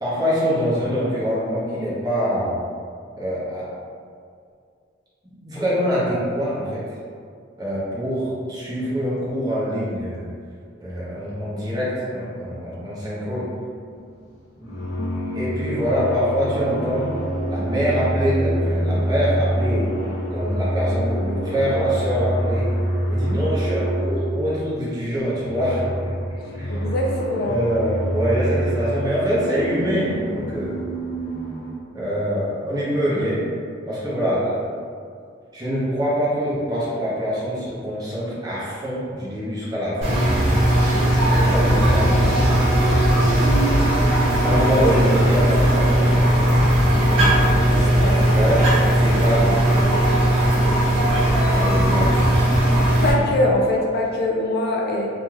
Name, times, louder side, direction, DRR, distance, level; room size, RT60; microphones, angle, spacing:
voice 1, 0.0-2.6 3.2-3.7 5.2-6.9 7.6-10.3 10.8-13.5 14.5-17.2 17.5-19.9 20.3-22.7 23.1-26.1 26.5-26.9 27.4-30.8 31.9-33.4 33.9-34.7 35.5-40.2 40.9-42.7 44.4-46.3 47.1-47.6 48.1-49.9 51.5-52.3, equal, 20° right, -8 dB, 0.7 m, -24 dB
sound 1, 13.9-14.2 14.6-24.7 25.2-31.8, equal, 80° left, 0.7 m, -26 dB
voice 2, 26.7-27.6 44.7-44.8 47.7-48.2 53.0-55.1, left 1 dB, 50° left, -1 dB, 0.4 m, -23 dB
sound 2, 40.0-53.1, right 1 dB, 70° right, 1.5 m, -18 dB
3.1 x 2.6 x 2.3 m, 2.2 s
head